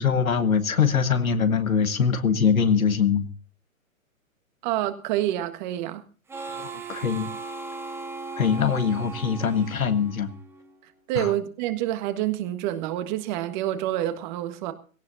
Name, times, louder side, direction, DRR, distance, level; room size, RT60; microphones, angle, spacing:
voice 1, 0.0-3.3 6.6-7.3 8.4-10.3 11.2-11.3, left 6 dB, 85° left, 1.7 m, -23 dB
voice 2, 4.6-6.0 11.1-14.7, right 13 dB, 35° right, 1.5 m, -27 dB
Harmonica, 6.3-10.8, right 4 dB, 5° right, 0.8 m, -38 dB
18.0 x 17.0 x 2.7 m
hypercardioid pair, 130°, 41 cm